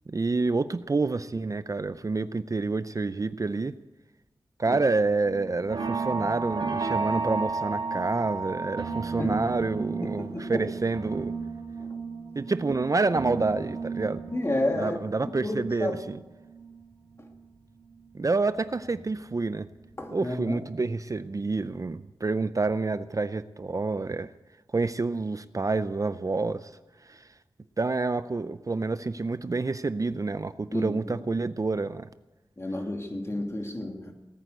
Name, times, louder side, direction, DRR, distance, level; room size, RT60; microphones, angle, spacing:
voice 1, 0.1-3.8 4.6-11.3 12.4-14.2 14.8-16.2 18.1-19.7 20.1-24.3 24.7-26.7 27.1-27.3 27.8-32.1, right 3 dB, 40° right, 0.5 m, -28 dB
sound 1, 5.2-17.4 17.8-19.4 19.7-20.1 20.4-20.5, right 4 dB, 65° right, 2.5 m, -34 dB
voice 2, 9.2-10.7 11.8-12.0 14.3-15.2 15.4-16.0 20.0-20.6 30.7-31.2 32.6-34.1, left 1 dB, 30° left, 2.6 m, -32 dB
18.5 x 9.4 x 8.0 m
wide cardioid pair, 75°, 9 cm